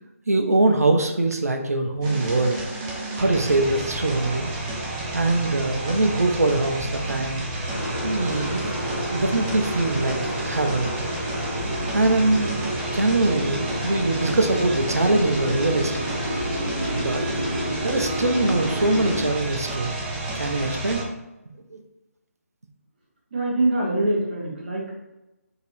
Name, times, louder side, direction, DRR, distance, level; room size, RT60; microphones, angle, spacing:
voice 1, 0.3-2.6 3.1-4.5 5.1-7.4 8.0-8.8 9.1-10.9 11.9-12.5 12.9-16.1 16.3-16.4 16.9-17.3 17.8-19.9 20.3-21.0 21.7-21.8, right 2 dB, 75° right, 5 dB, 0.6 m, -23 dB
sound 1, 2.0-21.0, right 2 dB, 10° right, 0.3 m, -31 dB
sound 2, 7.7-19.2, equal, 80° left, 1.4 m, -30 dB
voice 2, 23.3-24.9, right 2 dB, 40° right, -5 dB, 1.1 m, -24 dB
4.0 x 2.6 x 2.6 m, 0.98 s
figure-of-eight pair, 150°, 8 cm